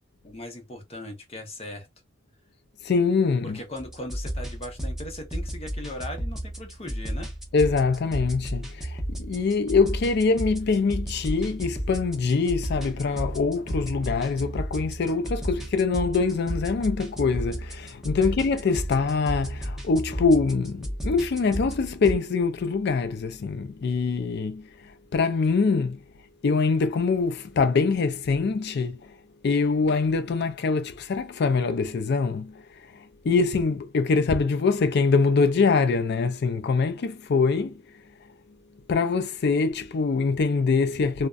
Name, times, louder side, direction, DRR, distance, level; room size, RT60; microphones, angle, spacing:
voice 1, 0.2-1.9 3.4-7.3 18.2-18.4, left 1 dB, 30° left, 0.8 m, -38 dB
voice 2, 2.8-3.6 7.5-24.7 25.1-26.0 26.4-29.0 29.4-32.6 32.9-37.8 38.9-41.3, left 4 dB, 55° left, 0.4 m, -24 dB
sound 1, 3.8-22.2, equal, ahead, 0.7 m, -33 dB
2.5 x 2.2 x 2.3 m
head